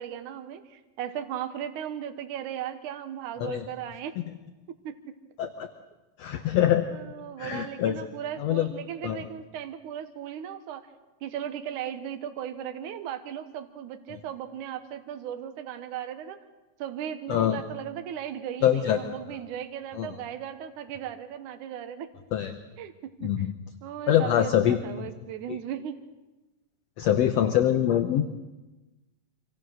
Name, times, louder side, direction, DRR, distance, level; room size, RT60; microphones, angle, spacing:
voice 1, 0.0-4.2 4.8-5.0 6.3-6.4 6.9-10.8 11.2-16.4 16.8-22.1 22.8-22.9 23.2-23.5 23.8-26.0, right 9 dB, 75° right, 8 dB, 2.6 m, -37 dB
voice 2, 6.2-6.9 7.4-8.0 8.4-8.7 9.0-9.2 17.3-17.6 18.6-19.1 20.0-20.1 22.3-22.5 23.2-23.5 24.1-25.1 25.5-25.6 27.0-28.3, left 11 dB, 65° left, 8 dB, 1.8 m, -24 dB
26.0 x 25.5 x 6.5 m, 1.1 s
omnidirectional pair, 3.7 m